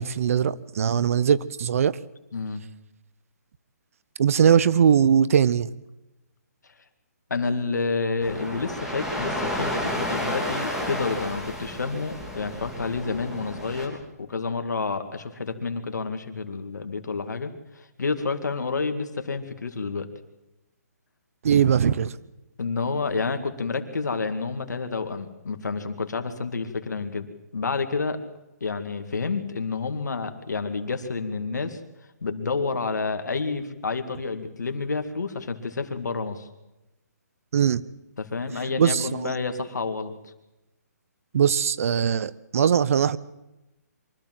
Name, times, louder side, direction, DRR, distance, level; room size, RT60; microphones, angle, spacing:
voice 1, 0.0-2.0 4.2-5.7 21.4-22.1 37.5-37.8 38.8-39.3 41.3-43.2, right 8 dB, 55° right, 18 dB, 0.9 m, -20 dB
voice 2, 2.3-2.6 7.3-20.1 22.6-27.3 27.5-28.2 28.6-31.8 32.2-36.5 38.2-40.3, left 4 dB, 80° left, 7 dB, 2.2 m, -29 dB
sound 1, 8.2-13.9, equal, 5° right, 3.2 m, -31 dB
24.0 x 14.5 x 7.8 m, 0.97 s
hypercardioid pair, 155°, 9 cm